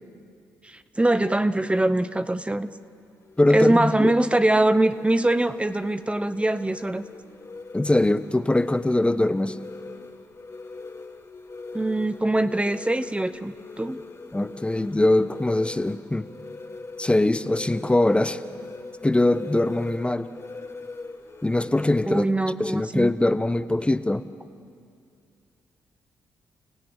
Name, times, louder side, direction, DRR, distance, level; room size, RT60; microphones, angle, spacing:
voice 1, 0.6-2.7 3.5-7.0 11.7-14.0 22.1-23.1, right 1 dB, 15° right, 12 dB, 1.0 m, -23 dB
sound 1, 2.6-22.3, left 3 dB, 40° left, 2.5 m, -41 dB
voice 2, 3.4-4.1 7.7-9.6 14.3-16.3 17.0-18.4 19.0-20.3 21.4-22.3 22.6-24.2, left 1 dB, 15° left, 11 dB, 1.0 m, -22 dB
30.0 x 16.0 x 9.2 m, 2.3 s
hypercardioid pair, 45°, 8 cm